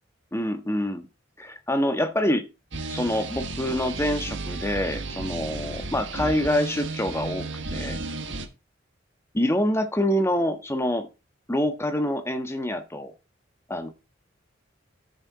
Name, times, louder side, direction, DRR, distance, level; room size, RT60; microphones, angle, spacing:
voice 1, 0.3-1.1 1.4-2.5 2.9-8.0 9.3-11.1 11.5-13.1 13.7-13.9, left 1 dB, 15° left, 7 dB, 1.4 m, -26 dB
sound 1, 2.7-8.5, right 3 dB, 70° right, 1.5 m, -33 dB
13.5 x 6.6 x 4.1 m, 0.29 s
head